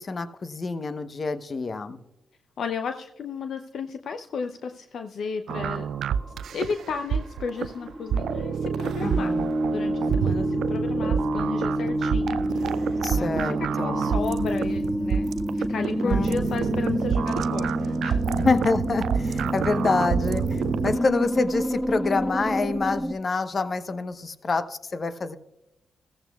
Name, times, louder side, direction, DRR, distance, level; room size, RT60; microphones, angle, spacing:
voice 1, 0.0-2.0 9.0-9.5 13.0-14.1 16.0-16.4 18.3-25.3, left 3 dB, 50° left, 10 dB, 0.9 m, -27 dB
voice 2, 2.6-5.9 6.5-9.4 9.7-18.4 19.4-19.5, left 5 dB, 70° left, 7 dB, 0.6 m, -34 dB
sound 1, 5.5-6.7 7.1-23.1, equal, 5° right, 2.0 m, -29 dB
sound 2, 5.5-21.0, right 8 dB, 75° right, 0.3 m, -28 dB
14.5 x 14.5 x 2.3 m, 0.89 s
supercardioid pair, 45°, 0 cm